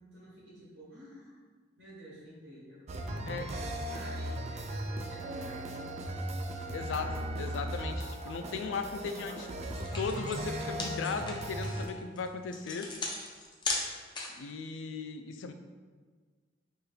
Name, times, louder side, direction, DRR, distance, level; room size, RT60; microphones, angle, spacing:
voice 1, 0.0-1.4 1.8-6.0, equal, 70° right, -6 dB, 1.5 m, -51 dB
sound 1, 2.9-11.9, right 1 dB, 35° right, 0.3 m, -37 dB
voice 2, 6.7-9.5 10.0-12.9 14.4-15.5, left 5 dB, 80° left, 8 dB, 0.3 m, -37 dB
sound 2, 9.3-9.4 9.7-14.5, left 3 dB, 25° left, 0.5 m, -37 dB
4.8 x 3.1 x 2.3 m, 1.5 s
head